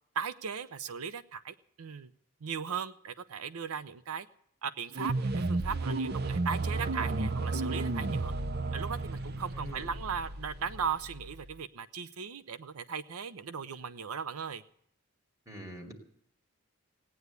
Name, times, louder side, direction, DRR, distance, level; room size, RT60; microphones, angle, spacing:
voice 1, 0.1-2.1 2.4-4.3 4.6-8.3 8.7-14.6, right 6 dB, 85° right, 14 dB, 0.6 m, -37 dB
sound 1, 4.9-11.6, right 3 dB, 45° right, 0.6 m, -33 dB
voice 2, 15.5-15.9, right 1 dB, 15° right, 3 dB, 2.6 m, -44 dB
17.5 x 9.5 x 8.2 m, 0.69 s
head